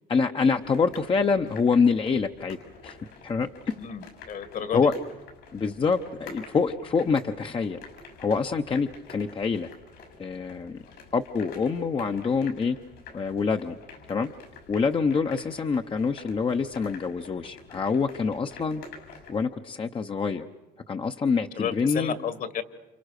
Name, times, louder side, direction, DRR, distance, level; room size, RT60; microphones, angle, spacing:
voice 1, 0.1-2.6 2.8-3.0 3.2-3.5 4.7-4.9 5.5-7.8 8.2-9.7 10.2-10.8 11.1-12.8 13.1-13.8 14.1-14.3 14.7-18.8 19.3-20.4 20.9-22.1, left 5 dB, 30° left, 6 dB, 0.9 m, -26 dB
sound 1, 0.6-19.4, left 4 dB, 75° left, 6.8 m, -48 dB
voice 2, 3.8-4.9 21.6-22.6, left 8 dB, 55° left, 13 dB, 2.1 m, -32 dB
30.0 x 28.0 x 6.7 m, 1.1 s
cardioid pair, 110°, 17 cm